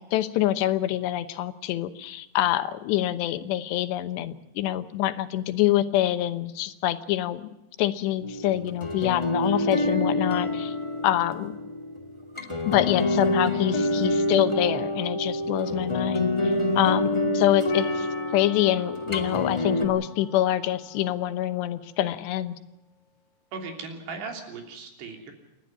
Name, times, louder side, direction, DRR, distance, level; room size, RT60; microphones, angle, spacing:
voice 1, 0.1-7.5 7.8-10.7 11.0-11.5 12.7-18.1 18.3-22.6, left 13 dB, 80° left, 12 dB, 3.2 m, -26 dB
sound 1, 8.2-19.8, left 1 dB, 15° left, 1.1 m, -27 dB
Percussion, 17.7-22.2, left 2 dB, 55° left, 4.1 m, -45 dB
voice 2, 23.5-25.3, right 4 dB, 75° right, 4 dB, 5.3 m, -37 dB
29.0 x 12.0 x 9.3 m, 0.95 s
omnidirectional pair, 4.9 m